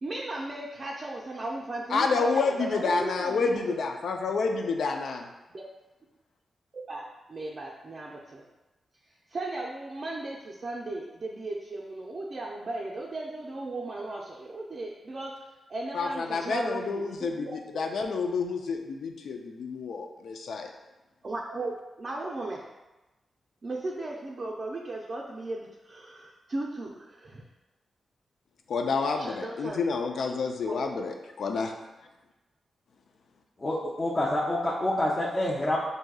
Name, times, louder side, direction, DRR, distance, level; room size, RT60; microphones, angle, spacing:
voice 1, 0.0-3.6 5.5-5.7 6.7-8.4 9.1-17.5 21.2-22.6 23.6-27.4 29.1-29.8 30.7-30.8, right 2 dB, 40° right, -3 dB, 0.4 m, -36 dB
voice 2, 1.9-5.3 15.9-17.5 17.8-20.7 28.7-31.7, left 4 dB, 75° left, 4 dB, 0.4 m, -29 dB
voice 3, 33.6-35.8, left 1 dB, 30° left, -7 dB, 0.6 m, -27 dB
6.1 x 2.7 x 2.3 m, 1.1 s
wide cardioid pair, 140°, 0 cm